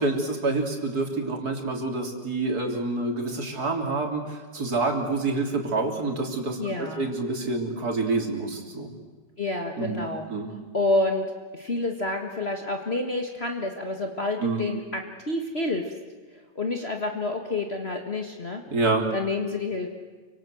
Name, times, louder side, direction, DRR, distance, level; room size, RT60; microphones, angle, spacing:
voice 1, 0.0-8.9 9.8-10.0 10.3-10.5 14.4-14.6 18.7-19.1, right 3 dB, 50° right, 2 dB, 4.0 m, -27 dB
voice 2, 6.6-7.1 9.4-10.3 10.7-11.3 11.5-15.0 15.3-15.9 16.3-18.6 19.1-19.9, left 2 dB, 35° left, 3 dB, 1.9 m, -28 dB
29.0 x 25.0 x 7.8 m, 1.4 s
omnidirectional pair, 2.0 m